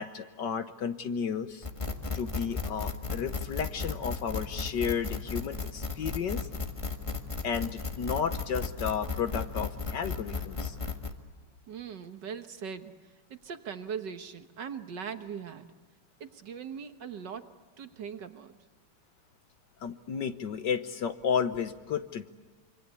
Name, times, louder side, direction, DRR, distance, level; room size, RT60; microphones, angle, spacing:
voice 1, 0.0-1.7 2.1-6.5 7.4-10.8 19.8-22.3, left 7 dB, 60° left, 10 dB, 1.4 m, -32 dB
sound 1, 1.6-11.1, left 4 dB, 15° left, 1.5 m, -35 dB
voice 2, 11.7-15.7 16.2-17.5 17.8-18.6, right 7 dB, 55° right, 9 dB, 1.7 m, -40 dB
26.0 x 24.5 x 8.2 m, 1.4 s
omnidirectional pair, 2.4 m